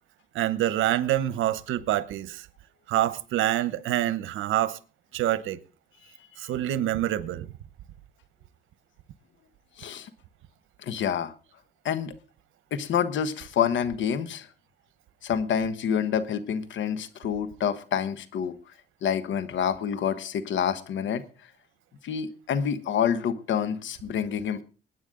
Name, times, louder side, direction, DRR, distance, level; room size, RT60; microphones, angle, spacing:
voice 1, 0.3-2.5 2.9-4.8 5.1-5.6 6.4-7.5, right 13 dB, 85° right, 1.0 m, -26 dB
voice 2, 9.8-10.1 10.8-11.3 11.8-12.1 12.7-14.5 15.2-18.6 19.0-21.2 22.0-24.6, left 8 dB, 70° left, 1.3 m, -27 dB
21.5 x 9.3 x 3.8 m
cardioid pair, 90°, 20 cm